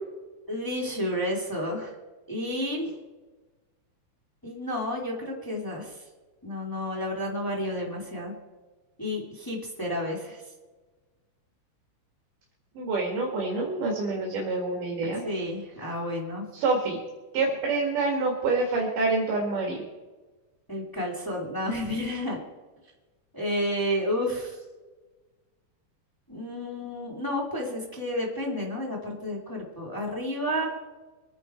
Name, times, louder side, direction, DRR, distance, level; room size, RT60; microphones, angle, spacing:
voice 1, 0.5-1.9 2.3-2.9 4.4-6.0 6.4-8.3 9.0-10.4 15.2-16.4 20.7-22.4 23.3-24.6 26.3-30.7, left 1 dB, 10° left, -2 dB, 1.4 m, -31 dB
voice 2, 12.7-15.2 16.5-17.0 17.3-19.8, right 3 dB, 50° right, -1 dB, 2.9 m, -27 dB
25.0 x 10.0 x 4.5 m, 1.3 s
omnidirectional pair, 5.7 m